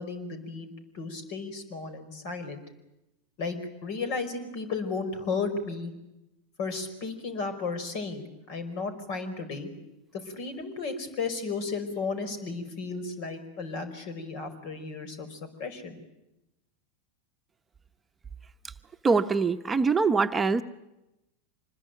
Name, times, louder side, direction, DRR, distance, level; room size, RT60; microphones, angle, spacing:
voice 1, 0.0-2.6 3.4-5.9 6.6-9.7 10.1-16.0, left 4 dB, 55° left, 9 dB, 5.2 m, -34 dB
voice 2, 19.0-20.6, right 4 dB, 15° right, 7 dB, 1.1 m, -23 dB
25.5 x 21.0 x 9.3 m, 0.93 s
hypercardioid pair, 95°, 0 cm